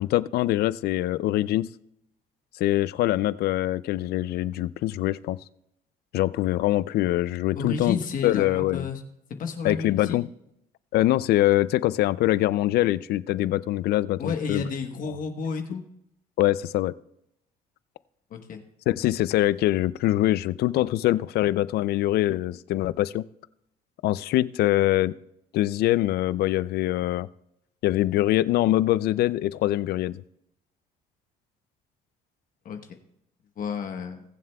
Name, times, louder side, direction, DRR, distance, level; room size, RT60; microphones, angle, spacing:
voice 1, 0.0-1.7 2.6-5.4 6.1-8.0 8.2-8.9 9.6-10.3 10.9-14.6 16.4-16.9 18.9-23.2 24.0-25.1 25.5-27.3 27.8-30.2, left 15 dB, 70° left, 18 dB, 0.4 m, -23 dB
voice 2, 7.5-9.0 9.4-10.2 14.2-15.8 18.3-18.6 32.6-32.8 33.6-34.2, left 5 dB, 55° left, 5 dB, 1.2 m, -31 dB
21.5 x 7.4 x 2.3 m, 0.78 s
cardioid pair, 110°, 17 cm